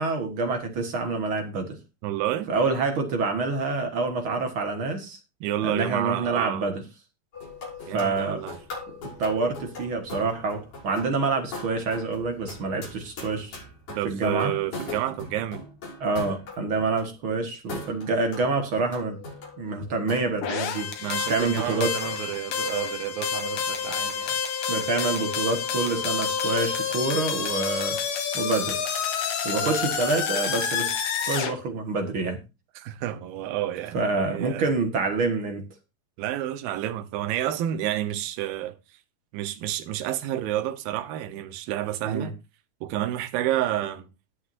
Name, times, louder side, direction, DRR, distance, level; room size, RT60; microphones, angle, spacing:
voice 1, 0.0-1.8 2.5-5.2 5.6-6.8 7.9-8.4 8.9-13.5 14.0-14.5 16.0-19.2 19.6-20.9 21.3-21.9 24.7-28.0 28.3-28.8 29.4-30.9 31.3-32.4 33.9-35.6 42.0-42.3, right 3 dB, 55° right, 1.5 m, -27 dB
voice 2, 2.0-2.5 5.4-6.7 7.9-8.6 14.0-15.6 21.0-24.4 29.6-29.8 32.8-34.7 36.2-38.8 39.3-42.4 42.8-44.1, right 12 dB, 75° right, 2.7 m, -30 dB
sound 1, 7.3-17.1 17.7-22.4, left 3 dB, 50° left, 7.6 m, -40 dB
sound 2, 20.4-31.5, left 7 dB, 85° left, 3.8 m, -28 dB
19.5 x 6.6 x 2.6 m
omnidirectional pair, 4.4 m